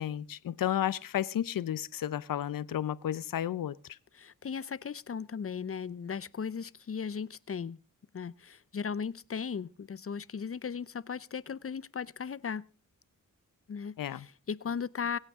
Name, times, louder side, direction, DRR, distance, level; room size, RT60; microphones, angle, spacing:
voice 1, 0.0-3.7 14.0-14.2, left 11 dB, 80° left, 0.7 m, -32 dB
voice 2, 4.1-7.8 8.1-12.6 13.7-15.2, left 6 dB, 45° left, 0.7 m, -37 dB
26.5 x 8.9 x 3.6 m
cardioid pair, 55°, 33 cm